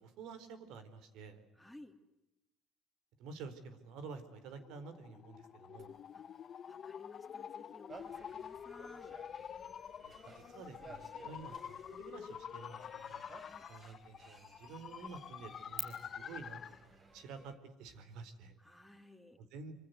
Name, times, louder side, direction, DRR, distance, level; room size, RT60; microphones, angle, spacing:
voice 1, 0.0-1.4 3.2-5.9 10.0-13.2 13.7-17.5 17.8-18.6 19.4-19.7, right 4 dB, 75° right, 11 dB, 4.3 m, -50 dB
voice 2, 1.6-2.0 6.1-6.2 6.7-9.2 13.3-13.7 18.6-19.4, left 1 dB, ahead, 3 dB, 3.0 m, -57 dB
sound 1, 4.2-16.9, left 8 dB, 40° left, 1.0 m, -48 dB
sound 2, 5.8-15.8, right 9 dB, 45° right, 5.4 m, -56 dB
sound 3, 7.9-17.5, right 3 dB, 25° right, 4.0 m, -58 dB
26.0 x 25.5 x 8.2 m, 0.93 s
cardioid pair, 130°, 0 cm